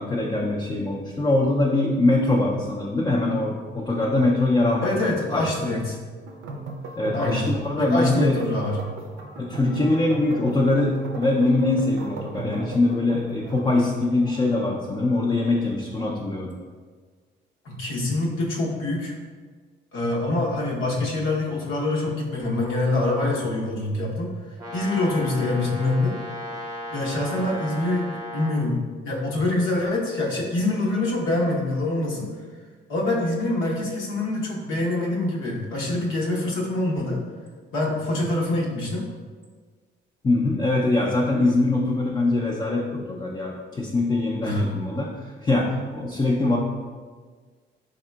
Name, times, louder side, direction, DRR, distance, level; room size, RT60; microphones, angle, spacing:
voice 1, 0.0-5.7 7.0-8.4 9.1-16.5 40.2-46.6, left 2 dB, 20° left, -1 dB, 0.4 m, -23 dB
voice 2, 4.8-6.0 7.1-7.5 7.8-8.8 17.6-19.1 19.9-24.3 24.7-26.2 26.9-32.3 32.9-37.2 37.7-39.0 44.4-44.7, left 2 dB, 80° left, -3 dB, 0.8 m, -25 dB
sound 1, 6.3-13.8, right 3 dB, 75° right, 0.5 m, -36 dB
Brass instrument, 24.6-28.6, equal, 15° right, 0.8 m, -35 dB
3.6 x 3.6 x 2.2 m, 1.5 s
cardioid pair, 90°, 20 cm